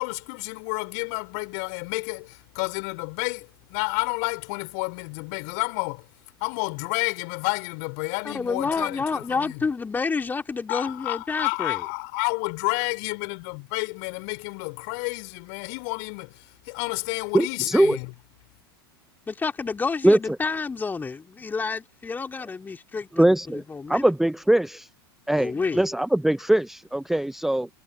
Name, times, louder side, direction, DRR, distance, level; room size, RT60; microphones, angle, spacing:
voice 1, 0.0-6.1 6.4-9.6 10.7-18.1, left 39 dB, 50° left, 4.2 m, -30 dB
voice 2, 8.2-11.8 19.3-24.1 25.4-25.9, left 4 dB, 15° left, 2.8 m, -29 dB
voice 3, 17.3-18.0 20.0-20.2 23.1-24.9 25.3-27.7, right 1 dB, ahead, 0.8 m, -21 dB
figure-of-eight pair, 90°, 13 cm